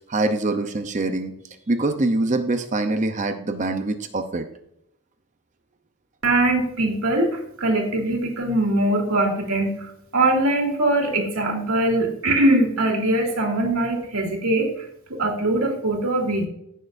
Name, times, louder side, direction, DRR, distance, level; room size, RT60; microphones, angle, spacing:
voice 1, 0.1-1.3 1.7-4.5, right 2 dB, 35° right, 7 dB, 0.7 m, -24 dB
voice 2, 6.2-16.5, right 1 dB, 85° right, 1 dB, 2.4 m, -22 dB
16.0 x 6.5 x 2.6 m, 0.74 s
head